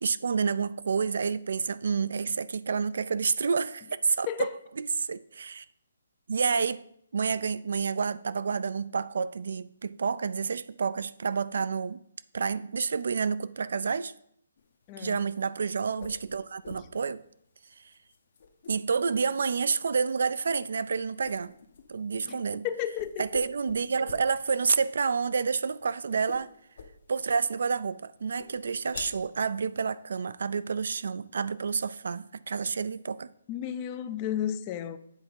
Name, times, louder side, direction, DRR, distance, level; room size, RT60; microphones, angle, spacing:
voice 1, 0.0-4.5 4.8-5.6 6.3-6.8 7.1-12.0 12.3-14.1 15.0-17.2 18.7-21.5 21.9-22.7 23.2-26.5 27.1-33.3, right 5 dB, 65° right, 0.3 m, -29 dB
sound 1, 14.6-30.1, left 5 dB, 55° left, 0.8 m, -50 dB
voice 2, 14.9-15.2 22.2-22.4 22.6-23.2 33.5-35.0, left 10 dB, 20° left, 0.4 m, -32 dB
8.0 x 3.5 x 5.5 m
hypercardioid pair, 165°, 0 cm